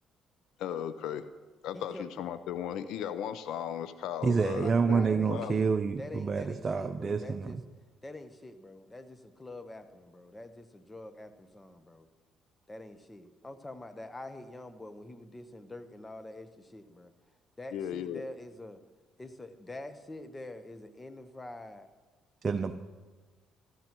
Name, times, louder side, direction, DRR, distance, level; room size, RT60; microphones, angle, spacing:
voice 1, 0.6-1.2 1.6-5.6 17.7-18.2, left 9 dB, 75° left, 12 dB, 0.5 m, -36 dB
voice 2, 1.7-2.2 4.3-5.7 6.0-7.6 8.0-12.1 12.7-17.1 17.6-18.8 19.2-21.9, left 1 dB, 20° left, 10 dB, 1.0 m, -46 dB
voice 3, 4.2-7.6 22.4-22.7, right 5 dB, 40° right, 8 dB, 0.6 m, -28 dB
15.0 x 13.5 x 3.0 m, 1.3 s
supercardioid pair, 70°, 0 cm